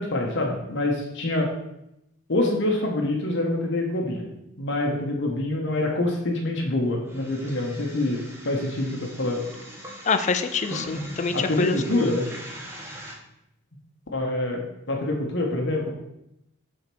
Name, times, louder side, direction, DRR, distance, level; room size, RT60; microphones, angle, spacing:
voice 1, 0.0-1.5 2.3-4.2 4.6-9.4 11.3-12.3 14.1-15.9, left 1 dB, 60° left, 0 dB, 1.1 m, -26 dB
sound 1, 7.0-13.1, equal, 10° right, 1.1 m, -40 dB
voice 2, 10.1-12.1, left 4 dB, 35° left, 9 dB, 0.4 m, -26 dB
5.1 x 4.1 x 6.0 m, 0.85 s
head